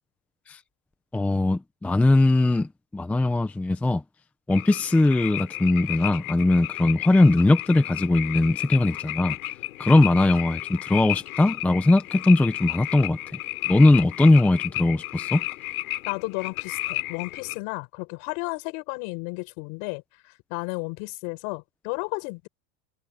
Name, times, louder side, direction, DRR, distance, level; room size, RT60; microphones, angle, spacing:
voice 1, 1.1-4.0 4.5-9.4 9.8-13.2 13.7-15.4, left 2 dB, 5° left, 0.5 m, -20 dB
sound 1, 4.5-17.6, left 18 dB, 90° left, 4.4 m, -33 dB
voice 2, 16.1-22.5, left 31 dB, 55° left, 6.9 m, -33 dB
supercardioid pair, 160°, 42 cm